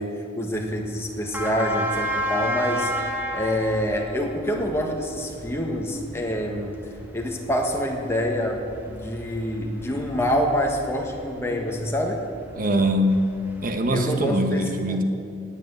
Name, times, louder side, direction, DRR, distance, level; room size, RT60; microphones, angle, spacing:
voice 1, 0.0-2.9 3.3-6.8 7.1-12.2 13.9-15.0, equal, 15° left, 1 dB, 1.6 m, -26 dB
sound 1, 0.5-14.3, equal, 10° right, 1.5 m, -34 dB
voice 2, 12.5-13.2 13.6-15.0, equal, 45° right, 6 dB, 1.3 m, -22 dB
19.0 x 8.2 x 8.0 m, 2.4 s
head